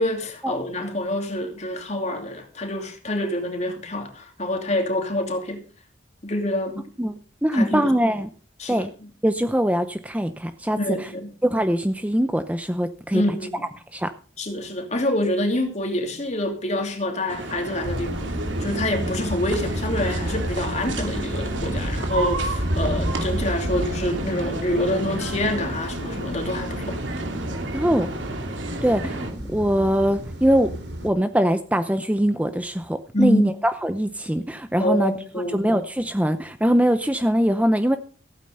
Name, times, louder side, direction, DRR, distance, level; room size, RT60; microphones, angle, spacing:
voice 1, 0.0-5.7 6.2-6.9 7.5-7.9 8.6-9.1 10.8-11.3 13.1-13.7 14.4-18.2 18.6-27.0 33.1-33.6 34.8-35.7, left 1 dB, 35° left, 2.9 m, -26 dB
voice 2, 7.0-8.3 8.7-8.9 9.2-10.8 11.5-13.2 13.9-14.1 27.7-28.1 28.8-30.7 31.0-35.1 35.5-38.0, equal, 5° right, 0.7 m, -22 dB
sound 1, 17.3-29.3, right 2 dB, 80° right, 2.9 m, -32 dB
sound 2, 17.8-31.1, equal, 60° right, 3.0 m, -31 dB
15.5 x 9.1 x 5.5 m
head